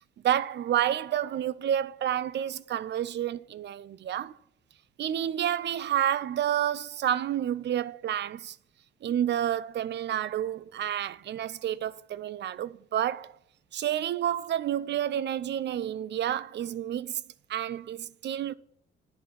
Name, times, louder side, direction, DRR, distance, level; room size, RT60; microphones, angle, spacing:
voice 1, 0.0-4.4 5.0-8.6 9.0-13.3 13.7-17.2 17.5-18.5, right 10 dB, 60° right, 0.5 m, -29 dB
8.4 x 4.7 x 7.3 m
cardioid pair, 75°, 20 cm